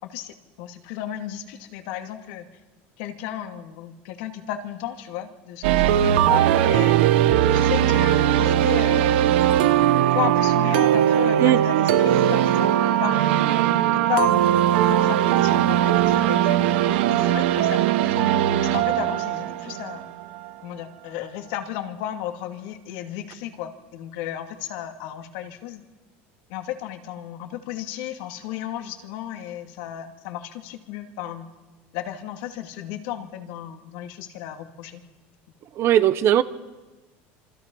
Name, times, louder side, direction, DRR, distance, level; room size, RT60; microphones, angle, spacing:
voice 1, 0.0-2.5 3.0-7.0 7.5-9.2 10.1-13.3 13.9-16.7 17.1-20.1 20.6-25.8 26.5-31.5 31.9-35.0, left 11 dB, 75° left, 2.6 m, -33 dB
sound 1, 5.6-20.5, right 11 dB, 85° right, 1.2 m, -19 dB
voice 2, 35.8-36.4, right 11 dB, 45° right, 1.1 m, -18 dB
27.0 x 25.0 x 5.6 m
supercardioid pair, 130°, 6 cm